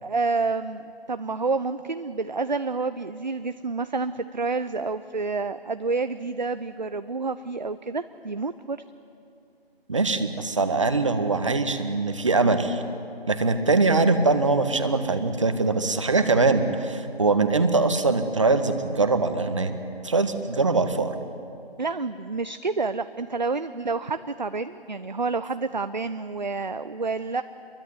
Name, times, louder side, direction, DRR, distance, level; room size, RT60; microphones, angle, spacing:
voice 1, 0.0-8.8 21.8-27.4, right 4 dB, 45° right, 11 dB, 0.7 m, -29 dB
voice 2, 9.9-12.8 13.3-19.7 20.0-21.2, right 3 dB, 30° right, 8 dB, 1.6 m, -22 dB
27.5 x 22.5 x 9.6 m, 2.6 s
figure-of-eight pair, 165°, 31 cm